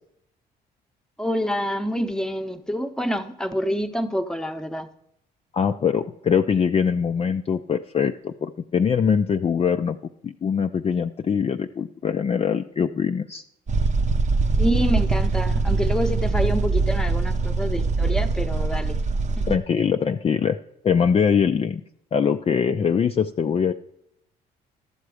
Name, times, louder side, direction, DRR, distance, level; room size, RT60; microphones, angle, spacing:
voice 1, 1.2-4.9 14.6-19.0 19.4-19.6, equal, 5° left, 0.9 m, -27 dB
voice 2, 5.5-10.0 10.2-13.4 19.5-20.6 20.8-21.8 22.1-23.7, left 7 dB, 35° left, 0.4 m, -22 dB
sound 1, 13.7-19.6, right 4 dB, 40° right, 0.8 m, -22 dB
12.5 x 6.8 x 4.9 m
supercardioid pair, 70°, 18 cm